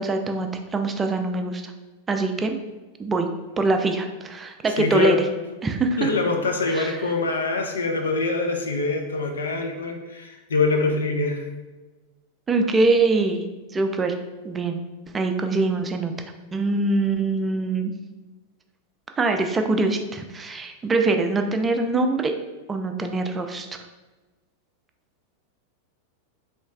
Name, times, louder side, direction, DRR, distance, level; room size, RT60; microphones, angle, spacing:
voice 1, 0.0-1.7 2.1-2.6 3.0-3.3 3.6-5.2 5.6-6.1 6.7-7.0 12.5-13.4 13.7-14.2 14.4-14.8 15.1-16.1 16.5-17.9 19.2-22.4 22.7-23.7, right 3 dB, 15° right, 5 dB, 0.3 m, -23 dB
voice 2, 4.8-5.2 6.0-11.4, left 3 dB, 70° left, 3 dB, 0.5 m, -24 dB
3.1 x 3.1 x 3.2 m, 1.2 s
figure-of-eight pair, 90°, 0 cm